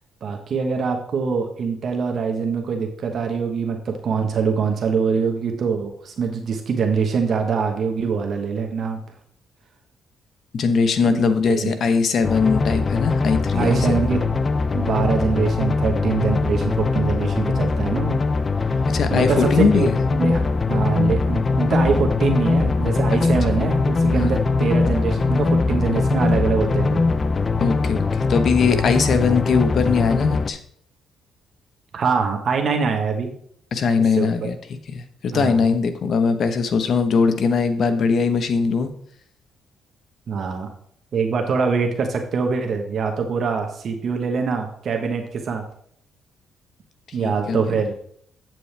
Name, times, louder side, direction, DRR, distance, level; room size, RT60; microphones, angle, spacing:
voice 1, 0.2-9.0 11.0-11.7 13.5-14.2 14.7-18.2 18.7-18.8 19.1-19.9 20.1-27.1 31.9-33.3 34.2-34.5 35.3-35.6 40.3-40.7 41.1-45.6 47.1-47.9, right 5 dB, 55° right, 4 dB, 1.2 m, -24 dB
voice 2, 10.5-14.0 18.9-19.9 24.2-24.3 27.6-30.6 33.7-38.9 47.2-47.6, left 5 dB, 60° left, 9 dB, 1.1 m, -20 dB
sound 1, 12.2-30.5, left 3 dB, 30° left, 0.5 m, -21 dB
8.6 x 7.6 x 3.4 m, 0.64 s
cardioid pair, 90°, 0 cm